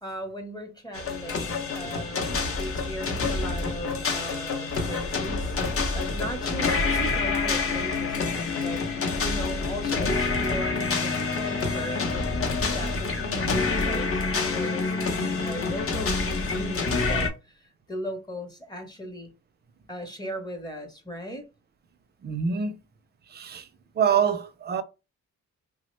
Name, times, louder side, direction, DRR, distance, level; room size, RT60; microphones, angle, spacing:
voice 1, 0.0-8.8 9.2-12.4 12.7-19.3 19.9-21.5, equal, 15° left, 0.7 m, -37 dB
sound 1, 0.9-17.3, left 3 dB, 50° left, 0.7 m, -27 dB
voice 2, 22.2-22.8 23.3-23.7 24.0-24.8, right 7 dB, 35° right, 0.4 m, -25 dB
3.2 x 2.1 x 3.1 m
wide cardioid pair, 115°, 29 cm